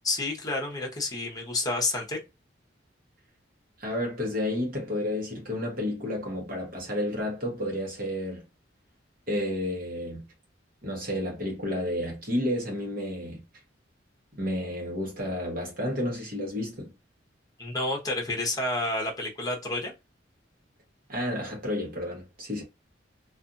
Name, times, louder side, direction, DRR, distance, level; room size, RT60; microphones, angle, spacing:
voice 1, 0.0-2.2 17.6-19.9, left 2 dB, 20° left, 0.9 m, -29 dB
voice 2, 3.8-8.4 9.3-10.3 10.8-13.4 14.4-16.9 21.1-22.6, left 1 dB, 50° right, 1.0 m, -31 dB
2.5 x 2.5 x 2.5 m
head